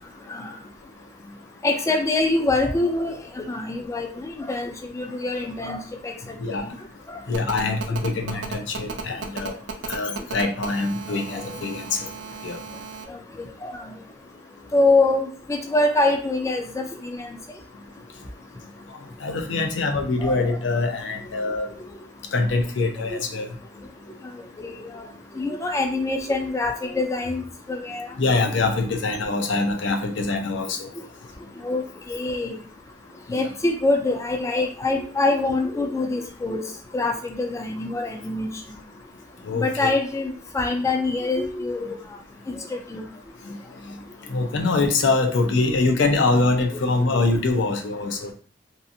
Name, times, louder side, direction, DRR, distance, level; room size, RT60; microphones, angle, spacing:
voice 1, 1.6-6.7 7.1-7.2 8.3-8.4 13.1-13.9 14.7-17.3 20.2-20.3 23.1-23.2 24.6-25.1 25.4-27.4 27.7-28.1 31.6-32.6 33.3-38.5 39.5-42.0 42.5-43.1 46.8-46.9, left 2 dB, 15° left, 4 dB, 0.3 m, -25 dB
voice 2, 7.3-9.6 9.9-12.1 12.4-12.6 19.2-21.7 22.3-23.5 28.2-30.9 33.3-33.5 39.4-39.9 43.5-43.6 43.8-43.9 44.3-48.3, left 3 dB, 80° left, 5 dB, 0.5 m, -24 dB
Telephone, 7.3-13.0, right 5 dB, 70° right, 0.4 m, -35 dB
2.7 x 2.4 x 2.6 m, 0.43 s
head